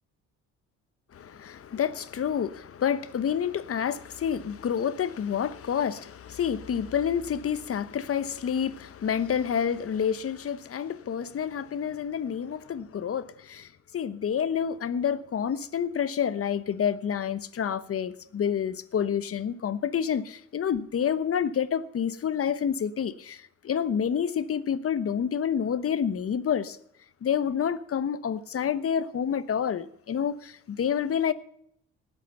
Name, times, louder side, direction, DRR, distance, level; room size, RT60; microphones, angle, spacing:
voice 1, 1.1-13.7 13.9-26.8 27.2-31.3, left 8 dB, 50° left, 1.1 m, -28 dB
19.0 x 8.3 x 5.6 m
cardioid pair, 90°, 30 cm